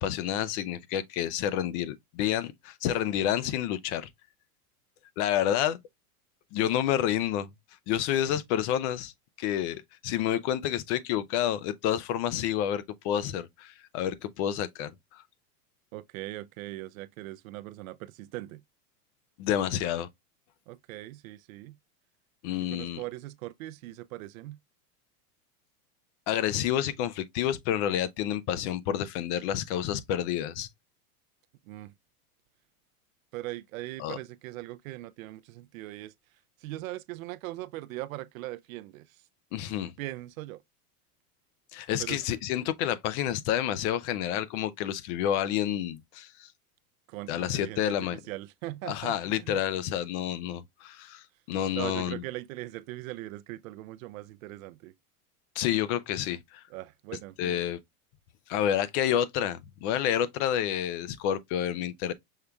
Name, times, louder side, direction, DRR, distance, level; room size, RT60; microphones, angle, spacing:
voice 1, 0.0-4.1 5.2-5.8 6.5-7.5 7.9-9.1 9.4-15.2 19.4-20.1 22.4-23.0 26.3-30.7 34.0-34.2 39.5-39.9 41.7-46.5 47.3-48.2 48.9-52.2 55.6-56.6 57.4-57.8 58.5-62.1, left 10 dB, 50° left, 0.6 m, -29 dB
voice 2, 15.9-18.6 20.7-21.8 22.7-24.6 31.7-31.9 33.3-36.1 36.6-39.2 40.0-40.6 42.0-42.2 47.1-49.6 51.7-54.9 56.7-57.6, right 17 dB, 65° right, 0.5 m, -40 dB
5.5 x 3.3 x 2.2 m
hypercardioid pair, 115°, 45 cm